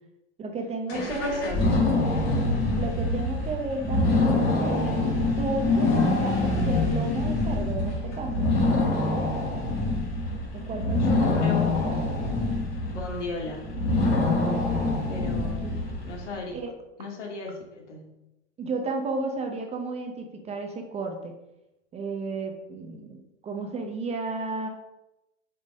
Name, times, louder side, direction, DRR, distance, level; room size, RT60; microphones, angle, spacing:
voice 1, 0.4-1.5 2.7-8.5 10.5-12.2 14.6-15.1 15.4-15.8 16.2-16.7 18.6-21.3 21.9-24.7, right 3 dB, 20° right, 3 dB, 0.8 m, -33 dB
voice 2, 0.9-1.9 11.1-11.7 12.9-13.7 15.1-15.6 16.0-16.6 17.0-18.2, left 3 dB, 80° left, -1 dB, 2.2 m, -35 dB
sound 1, 0.9-16.3, left 2 dB, 40° left, 2.3 m, -25 dB
5.4 x 3.9 x 5.3 m, 0.92 s
hypercardioid pair, 125°, 35 cm